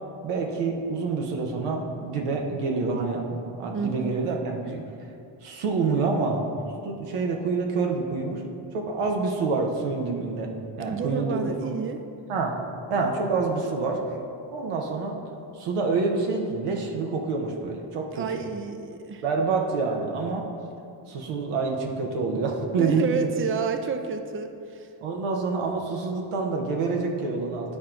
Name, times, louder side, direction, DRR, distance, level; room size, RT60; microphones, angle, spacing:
voice 1, 0.2-4.8 5.4-6.4 6.8-8.4 8.7-10.5 10.8-11.5 12.3-12.5 12.9-14.0 14.5-15.2 15.5-18.4 19.2-20.5 21.1-23.3 25.0-27.8, right 4 dB, 85° right, 1 dB, 1.1 m, -27 dB
voice 2, 3.7-4.1 10.8-12.0 18.1-19.2 22.8-24.9, right 5 dB, 25° right, 7 dB, 0.5 m, -30 dB
11.0 x 4.5 x 3.8 m, 2.6 s
supercardioid pair, 60°, 50 cm